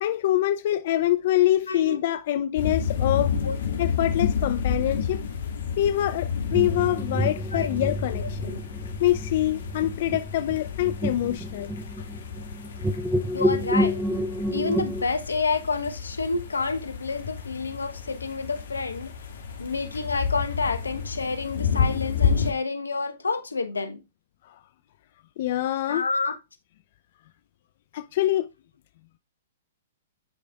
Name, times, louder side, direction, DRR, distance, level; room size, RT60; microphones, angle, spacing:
voice 1, 0.0-3.4 3.8-5.2 5.8-8.6 9.0-11.7 25.4-26.1 27.9-28.5, left 13 dB, 55° left, 0.6 m, -25 dB
voice 2, 1.7-2.0 3.4-3.6 7.5-7.7 8.2-8.3 13.3-14.0 14.5-19.1 19.6-24.0 25.9-26.4, left 4 dB, 85° left, 1.1 m, -29 dB
sound 1, 2.6-22.5, left 6 dB, 70° left, 2.1 m, -30 dB
sound 2, 6.5-15.0, equal, 5° right, 0.6 m, -29 dB
10.5 x 5.0 x 2.4 m
hypercardioid pair, 115°, 0 cm